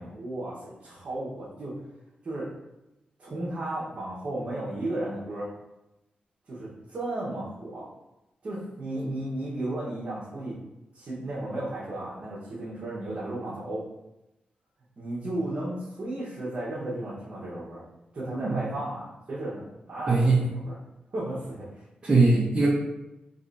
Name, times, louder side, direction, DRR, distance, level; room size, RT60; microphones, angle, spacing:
voice 1, 0.0-1.7 2.2-2.5 3.2-5.5 6.5-7.9 8.4-10.5 10.9-13.8 15.0-17.8 18.1-20.8 21.1-21.8, right 1 dB, 45° right, -9 dB, 1.3 m, -34 dB
voice 2, 20.1-20.4 22.0-22.7, right 3 dB, 30° right, -7 dB, 0.9 m, -21 dB
4.1 x 3.1 x 4.1 m, 0.93 s
wide cardioid pair, 120°, 3 cm